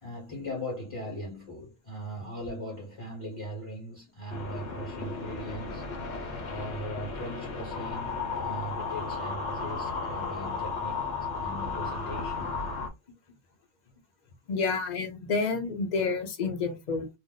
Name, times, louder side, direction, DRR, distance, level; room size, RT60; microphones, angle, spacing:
voice 1, 0.0-5.9 6.4-11.0 11.3-12.6, equal, 30° left, 1.2 m, -39 dB
sound 1, 4.3-12.9, left 4 dB, 70° left, 0.9 m, -34 dB
voice 2, 14.5-17.1, left 4 dB, 50° left, 0.6 m, -29 dB
2.6 x 2.0 x 3.7 m
omnidirectional pair, 1.2 m